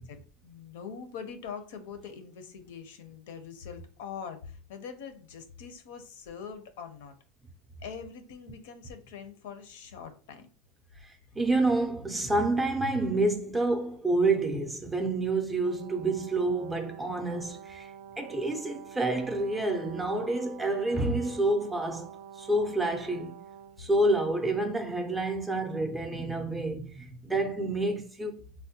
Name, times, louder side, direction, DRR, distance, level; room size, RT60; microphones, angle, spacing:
voice 1, 0.4-7.1 7.8-10.5, left 6 dB, 75° left, 0.6 m, -43 dB
voice 2, 11.0-23.4 23.8-28.4, right 2 dB, 10° right, 0.4 m, -28 dB
Brass instrument, 15.6-24.3, right 8 dB, 85° right, 0.3 m, -47 dB
3.4 x 2.1 x 2.8 m
supercardioid pair, 155°, 0 cm